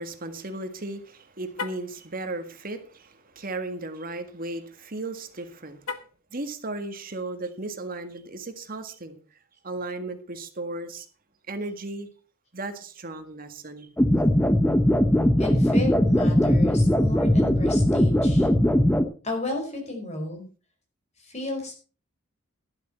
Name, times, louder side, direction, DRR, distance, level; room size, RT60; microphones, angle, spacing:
voice 1, 0.0-5.8 6.3-9.2 9.6-11.1 11.5-12.1 12.5-13.9, right 2 dB, 40° right, 1.7 m, -35 dB
Car, 1.5-1.9 5.8-6.3, left 5 dB, 85° left, 1.4 m, -35 dB
sound 1, 14.0-19.0, left 1 dB, 10° left, 0.9 m, -20 dB
voice 2, 15.4-18.5 19.2-20.4 21.2-21.7, left 2 dB, 30° left, 4.9 m, -33 dB
12.5 x 11.5 x 4.4 m
head